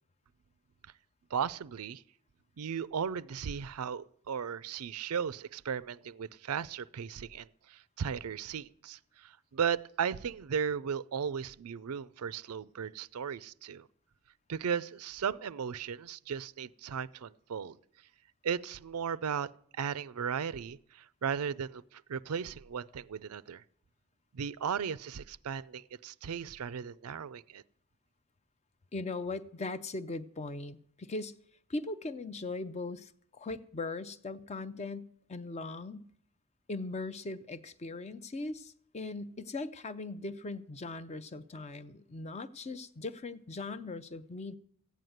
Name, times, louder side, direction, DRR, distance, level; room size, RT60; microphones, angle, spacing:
voice 1, 1.3-2.0 2.6-13.9 14.5-17.8 18.4-19.5 19.8-23.6 24.3-27.6, right 7 dB, 80° right, 0.5 m, -36 dB
voice 2, 28.9-31.4 31.7-36.1 36.7-44.5, left 3 dB, 30° left, 0.5 m, -39 dB
14.5 x 9.2 x 7.9 m
head